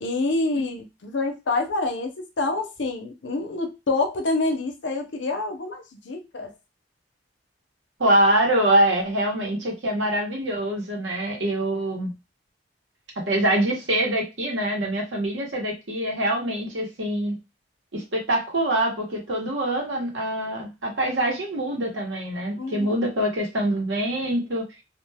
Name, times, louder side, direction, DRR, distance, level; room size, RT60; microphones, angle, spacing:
voice 1, 0.0-6.5 22.6-23.1, left 2 dB, 80° left, 4 dB, 0.6 m, -27 dB
voice 2, 8.0-12.1 13.2-17.3 17.9-24.6, right 1 dB, 85° right, 0 dB, 1.1 m, -24 dB
2.4 x 2.2 x 3.3 m, 0.25 s
head